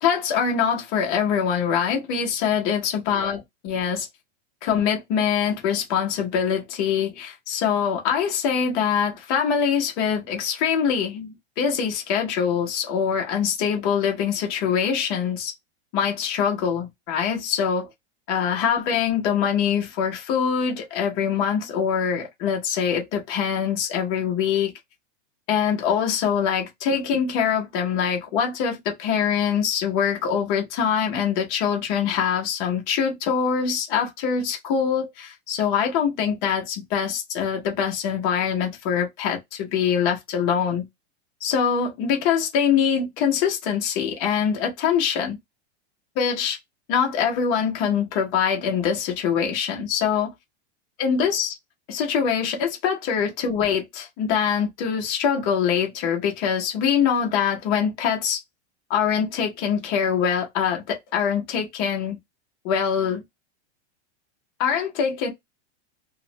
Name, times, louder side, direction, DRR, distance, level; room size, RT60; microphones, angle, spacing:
voice 1, 0.0-4.1 4.6-15.5 15.9-17.9 18.3-24.7 25.5-40.8 41.4-45.4 46.2-46.6 46.9-50.3 51.0-51.6 51.9-58.4 58.9-62.2 62.6-63.2 64.6-65.3, left 7 dB, 15° left, 0.3 m, -24 dB
2.9 x 2.0 x 2.5 m
supercardioid pair, 165°, 34 cm